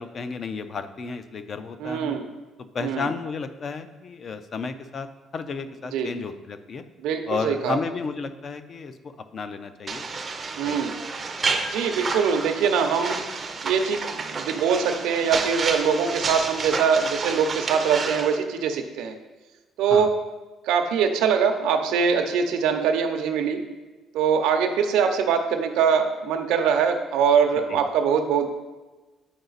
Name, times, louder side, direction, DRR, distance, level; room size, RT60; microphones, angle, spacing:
voice 1, 0.0-2.2 2.7-5.1 5.3-6.8 7.3-10.1 10.6-10.8 19.9-20.1 27.7-27.8, left 4 dB, 30° left, 10 dB, 0.4 m, -32 dB
voice 2, 1.8-2.3 2.8-3.1 5.9-6.1 7.0-7.8 10.6-11.0 11.7-13.2 13.6-19.1 19.8-20.1 20.6-23.6 24.1-28.5, right 6 dB, 85° right, 5 dB, 0.7 m, -23 dB
sound 1, 9.9-18.4, right 4 dB, 20° right, 0.5 m, -30 dB
7.8 x 4.9 x 4.0 m, 1.2 s
cardioid pair, 175°, 0 cm